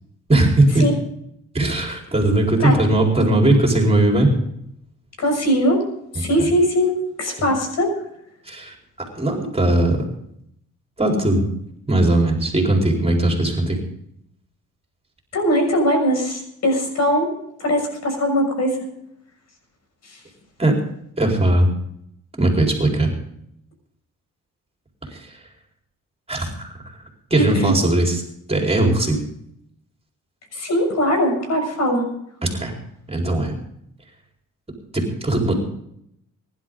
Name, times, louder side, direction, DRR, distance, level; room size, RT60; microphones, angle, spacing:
voice 1, 0.3-0.9 1.5-4.3 6.4-6.5 8.5-8.7 9.1-10.0 11.0-11.5 11.9-13.8 20.6-20.8 21.2-21.7 22.4-23.1 25.0-25.4 26.3-26.8 27.3-28.2 28.5-29.2 32.4-32.7 33.1-33.5 34.9-35.5, right 2 dB, 20° right, 1 dB, 4.3 m, -19 dB
voice 2, 5.2-5.8 6.1-6.9 7.2-7.9 15.3-17.3 17.6-18.9 20.0-20.2 27.4-27.8 30.5-32.1, equal, 60° left, 3 dB, 6.5 m, -20 dB
24.5 x 11.5 x 3.9 m, 0.74 s
cardioid pair, 90°, 30 cm